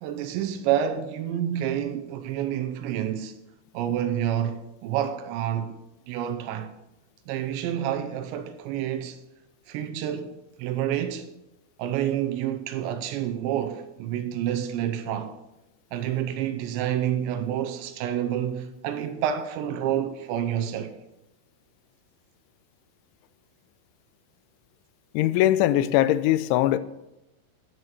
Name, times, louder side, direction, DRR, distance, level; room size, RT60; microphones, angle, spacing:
voice 1, 0.0-3.3 3.7-5.8 6.1-6.7 7.3-9.2 9.7-11.3 11.8-15.3 15.9-21.0, right 10 dB, 85° right, 2.9 m, -28 dB
voice 2, 25.1-26.8, left 13 dB, 85° left, 3.0 m, -21 dB
11.5 x 8.0 x 5.8 m
omnidirectional pair, 5.4 m